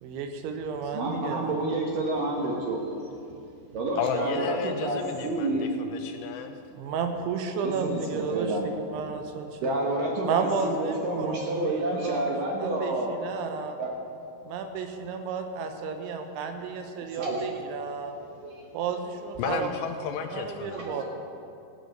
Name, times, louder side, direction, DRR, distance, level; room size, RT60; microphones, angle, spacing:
voice 1, 0.0-1.4 6.7-8.6 8.9-9.8 10.2-12.3 12.6-13.8 14.5-18.2 18.7-19.7 20.3-21.0, right 5 dB, 85° right, 6 dB, 3.4 m, -32 dB
voice 2, 0.9-2.8 3.7-5.7 7.6-8.7 9.6-13.1 13.8-13.9 17.1-17.4 18.4-18.5 20.8-21.0, right 2 dB, 70° right, 0 dB, 2.2 m, -29 dB
voice 3, 4.0-6.6 19.4-20.9, left 7 dB, 85° left, 6 dB, 2.6 m, -32 dB
14.5 x 9.4 x 6.6 m, 2.5 s
omnidirectional pair, 5.3 m